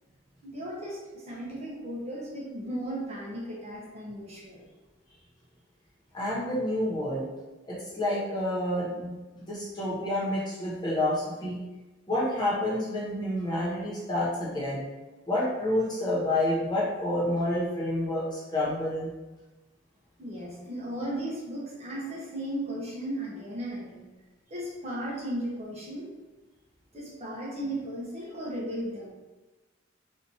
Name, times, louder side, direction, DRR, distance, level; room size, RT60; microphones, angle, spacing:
voice 1, 0.4-4.6 20.2-24.1 24.5-26.1 26.9-29.1, right 1 dB, 35° right, -5 dB, 1.1 m, -36 dB
voice 2, 6.1-7.3 7.7-9.2 9.5-11.6 12.1-14.8 15.3-19.1, left 1 dB, 25° left, -6 dB, 1.3 m, -29 dB
4.3 x 2.8 x 4.2 m, 1.2 s
head